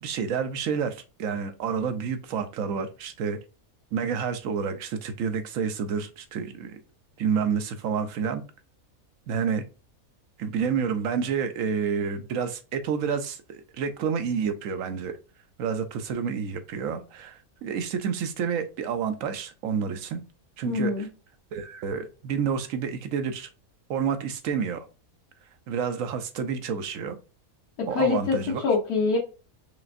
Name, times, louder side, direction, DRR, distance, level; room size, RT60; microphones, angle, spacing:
voice 1, 0.0-3.4 3.9-6.8 7.2-8.4 9.3-9.6 10.4-15.2 15.6-20.2 20.6-20.9 21.5-23.5 23.9-24.9 25.7-27.2 27.9-28.6, right 6 dB, 70° right, 1.0 m, -29 dB
voice 2, 20.7-21.1 27.8-28.4 28.6-29.2, left 4 dB, 90° left, 1.7 m, -24 dB
4.9 x 3.3 x 2.6 m
omnidirectional pair, 1.6 m